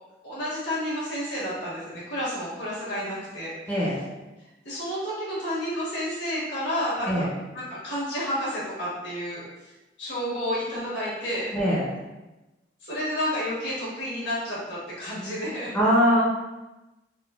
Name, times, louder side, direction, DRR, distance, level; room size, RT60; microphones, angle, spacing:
voice 1, 0.2-3.5 4.6-7.3 7.5-9.7 10.0-11.5 12.8-15.7, equal, 70° left, -8 dB, 1.3 m, -30 dB
voice 2, 11.5-11.9 15.7-16.2, equal, 10° left, -8 dB, 0.5 m, -21 dB
3.7 x 2.1 x 2.3 m, 1.1 s
head